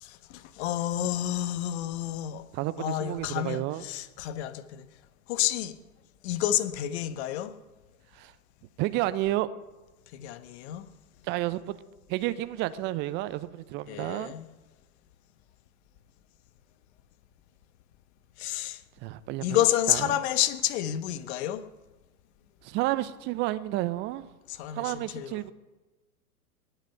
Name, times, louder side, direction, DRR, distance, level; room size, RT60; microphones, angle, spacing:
voice 1, 0.0-2.4 2.8-4.9 5.3-5.7 6.2-7.5 10.1-10.9 13.9-14.5 18.4-18.8 19.4-21.6 24.5-25.4, left 12 dB, 45° left, 1.2 m, -29 dB
voice 2, 2.5-3.8 8.1-8.3 8.8-9.5 11.3-11.8 12.1-14.3 19.0-19.5 19.9-20.0 22.6-24.3 24.7-25.5, right 16 dB, 25° right, 0.6 m, -30 dB
19.0 x 8.1 x 5.7 m
figure-of-eight pair, 105°, 46 cm